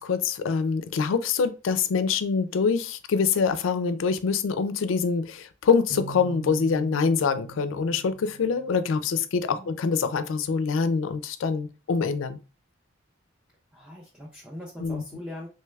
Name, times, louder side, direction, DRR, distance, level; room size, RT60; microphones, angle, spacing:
voice 1, 0.0-12.4 14.8-15.0, left 5 dB, 70° left, 0.4 m, -25 dB
sound 1, 5.9-9.6, right 6 dB, 90° right, 0.8 m, -43 dB
voice 2, 13.7-15.5, left 1 dB, 5° right, 0.4 m, -40 dB
3.2 x 3.0 x 2.2 m
head